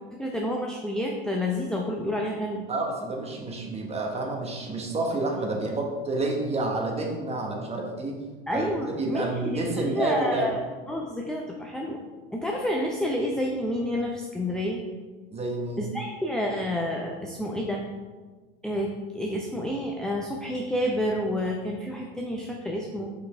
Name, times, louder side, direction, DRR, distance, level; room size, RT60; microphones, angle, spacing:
voice 1, 0.1-2.6 8.5-10.6 10.9-12.0 12.3-14.8 15.8-17.8 18.6-23.1, left 1 dB, ahead, -1 dB, 0.6 m, -29 dB
voice 2, 2.7-8.2 8.5-10.5 15.3-15.8, right 2 dB, 20° right, 1 dB, 1.3 m, -29 dB
5.6 x 5.5 x 3.4 m, 1.3 s
hypercardioid pair, 85°, 30 cm